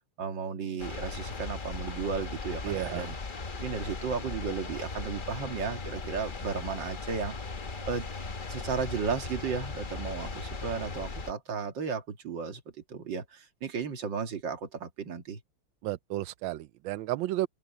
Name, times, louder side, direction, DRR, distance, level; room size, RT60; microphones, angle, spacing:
voice 1, 0.0-3.2 3.6-7.4 7.9-8.1 8.5-12.6 12.9-15.4, right 5 dB, 60° right, 2.4 m, -34 dB
sound 1, 0.8-11.3, left 3 dB, 35° left, 0.9 m, -38 dB
voice 2, 2.6-3.1 15.8-17.5, right 15 dB, 75° right, 1.2 m, -32 dB
omnidirectional pair, 2.4 m